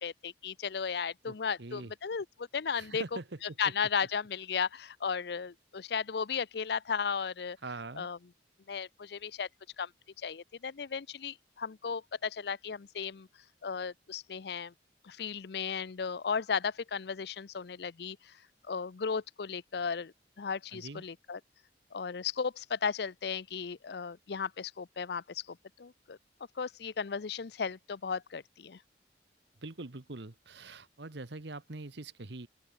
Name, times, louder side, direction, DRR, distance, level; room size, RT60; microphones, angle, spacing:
voice 1, 0.0-3.0 3.6-7.6 8.0-8.2 8.7-9.5 9.8-9.9 10.2-13.3 13.6-14.7 15.0-18.4 18.7-21.4 21.9-26.2 26.6-28.8, left 6 dB, 60° left, 0.5 m, -35 dB
voice 2, 1.3-1.9 2.8-3.4 7.6-8.1 20.7-21.0 29.6-32.5, right 2 dB, 70° right, 1.2 m, -43 dB
head